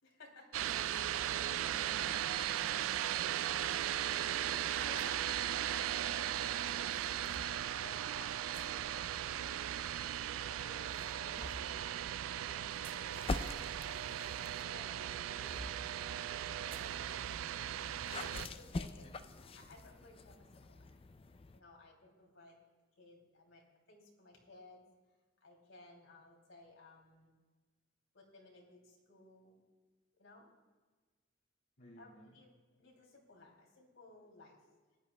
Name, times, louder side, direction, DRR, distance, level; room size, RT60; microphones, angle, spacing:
voice 1, 0.0-0.6 4.5-10.0 10.4-12.0 12.3-14.0 14.7-16.8 17.6-20.9 21.5-22.6 23.0-24.9 25.4-27.3 28.1-29.6 30.2-30.5 32.0-32.5 32.8-34.8, left 2 dB, 90° left, 2.7 m, -58 dB
sound 1, 0.5-18.5, right 11 dB, 85° right, 0.3 m, -37 dB
sound 2, 5.0-5.2 6.4-7.6 8.5-8.7 9.8-10.4 10.9-11.8 12.6-14.6 15.1-15.8 16.7-16.9 17.4-17.5 18.0-18.2, right 1 dB, 30° right, 0.9 m, -52 dB
sound 3, 13.1-14.7 15.4-21.6, left 3 dB, 30° left, 0.4 m, -45 dB
voice 2, 31.8-32.4, equal, 60° left, 2.0 m, -59 dB
19.5 x 11.0 x 2.2 m
head